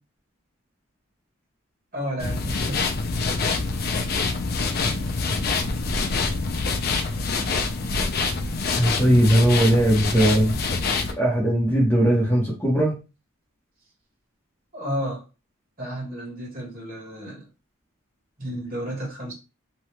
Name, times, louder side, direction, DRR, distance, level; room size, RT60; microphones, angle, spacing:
voice 1, 1.9-2.9 14.7-15.2 15.8-17.5 18.4-19.3, equal, 40° right, 1.3 m, -32 dB
sound 1, 2.2-11.1, left 4 dB, 45° left, 0.4 m, -25 dB
voice 2, 8.7-10.6 11.2-12.9, right 1 dB, 10° left, 0.8 m, -19 dB
2.9 x 2.3 x 3.1 m
head